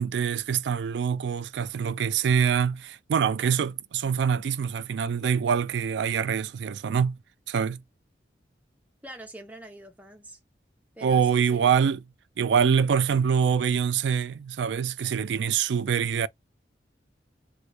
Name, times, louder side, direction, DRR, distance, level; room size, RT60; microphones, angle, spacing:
voice 1, 0.0-7.2 7.5-7.8 11.0-12.0 12.4-16.3, right 7 dB, 75° right, 0.3 m, -25 dB
voice 2, 9.0-10.4 10.9-11.7, right 1 dB, 10° right, 0.6 m, -44 dB
3.7 x 2.3 x 3.0 m
head